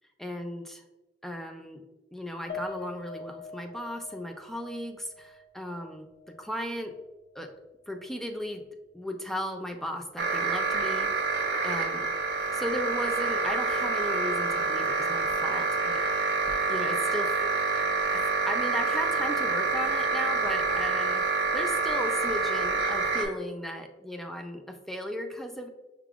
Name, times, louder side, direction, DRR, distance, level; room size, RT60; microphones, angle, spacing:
voice 1, 0.2-0.8 1.2-1.8 2.1-7.0 7.3-7.5 7.9-8.6 8.9-11.1 11.6-12.1 12.5-16.3 16.7-17.4 17.7-21.3 21.5-25.7, equal, ahead, 4 dB, 0.3 m, -36 dB
Piano, 2.5-7.0 7.3-7.5 7.9-8.0, left 3 dB, 60° left, 0.5 m, -44 dB
sound 1, 10.2-23.2, right 4 dB, 65° right, 0.8 m, -27 dB
5.7 x 3.5 x 2.3 m, 1.1 s
head